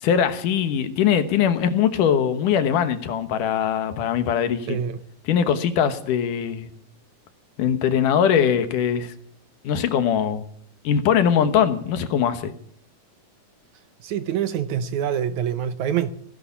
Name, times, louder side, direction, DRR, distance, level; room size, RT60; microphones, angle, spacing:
voice 1, 0.0-4.8 5.3-6.7 7.6-9.1 9.6-10.5 10.8-12.5, left 8 dB, 70° left, 2.6 m, -21 dB
voice 2, 4.7-5.0 14.0-16.1, right 9 dB, 75° right, 1.8 m, -25 dB
17.5 x 11.5 x 7.2 m
omnidirectional pair, 4.2 m